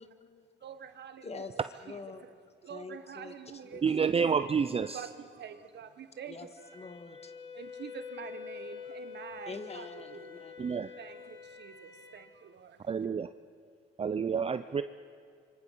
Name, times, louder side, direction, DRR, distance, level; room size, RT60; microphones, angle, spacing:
voice 1, 0.0-0.5 1.2-1.6 1.8-2.4 2.7-3.3 3.7-3.8 6.3-6.5 6.7-7.3 9.5-10.8, left 4 dB, 30° left, 8 dB, 1.8 m, -45 dB
voice 2, 0.6-1.5 1.9-2.3 2.6-4.4 4.8-6.4 7.5-10.4 11.0-12.9, right 8 dB, 60° right, 10 dB, 1.4 m, -47 dB
voice 3, 3.8-5.0 10.6-10.9 12.9-13.3 14.0-14.8, right 6 dB, 30° right, 11 dB, 0.6 m, -29 dB
Wind instrument woodwind instrument, 6.6-12.3, left 7 dB, 65° left, 2.6 m, -47 dB
26.5 x 24.5 x 5.7 m, 2.3 s
cardioid pair, 90°, 20 cm